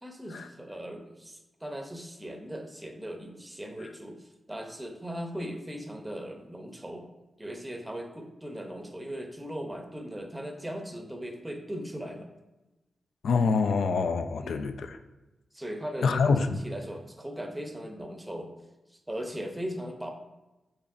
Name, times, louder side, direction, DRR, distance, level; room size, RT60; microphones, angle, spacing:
voice 1, 0.0-7.1 7.4-12.3 14.4-14.7 15.5-18.5 18.9-20.1, equal, 10° right, 4 dB, 0.6 m, -38 dB
voice 2, 13.2-15.0 16.0-16.6, left 4 dB, 85° left, 8 dB, 0.3 m, -26 dB
6.6 x 2.9 x 2.5 m, 1.0 s
wide cardioid pair, 90°, 0 cm